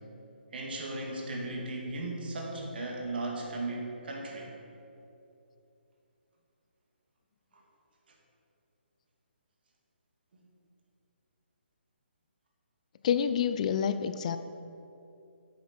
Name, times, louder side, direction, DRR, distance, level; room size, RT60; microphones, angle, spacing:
voice 1, 0.5-4.5 7.5-7.6 10.3-10.4, right 2 dB, 60° right, 0 dB, 2.2 m, -36 dB
voice 2, 13.0-14.4, left 8 dB, 35° left, 11 dB, 0.4 m, -28 dB
10.0 x 8.4 x 4.4 m, 2.8 s
hypercardioid pair, 150°, 6 cm